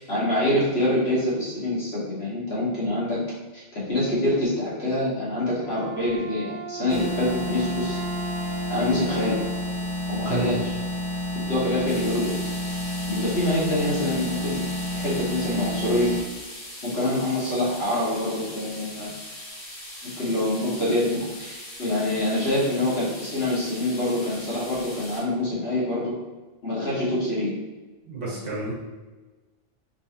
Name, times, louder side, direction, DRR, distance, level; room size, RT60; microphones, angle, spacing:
voice 1, 0.0-3.2 3.5-8.0 8.7-9.4 10.1-10.7 11.4-12.4 13.1-14.6 14.9-16.1 16.8-19.1 20.2-26.1 26.6-27.5, left 1 dB, 60° left, -8 dB, 1.7 m, -25 dB
Wind instrument woodwind instrument, 5.5-9.7, right 3 dB, 40° right, 1.4 m, -37 dB
sound 1, 6.9-16.2, left 1 dB, 35° left, 0.4 m, -30 dB
sound 2, 11.9-25.2, left 1 dB, 85° left, 1.6 m, -40 dB
voice 2, 28.0-28.7, right 3 dB, 80° right, -5 dB, 1.5 m, -30 dB
4.0 x 3.6 x 2.7 m, 1.2 s
omnidirectional pair, 1.2 m